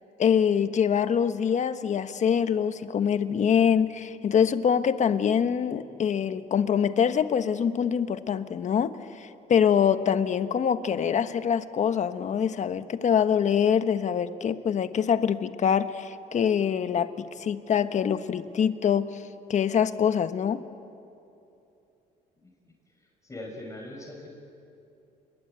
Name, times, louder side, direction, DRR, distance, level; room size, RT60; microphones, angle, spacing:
voice 1, 0.2-19.2 19.5-20.6, left 8 dB, 45° left, 10 dB, 1.2 m, -24 dB
voice 2, 23.2-24.3, left 1 dB, 20° left, 0 dB, 5.8 m, -40 dB
29.0 x 21.5 x 9.1 m, 2.7 s
cardioid pair, 110°, 17 cm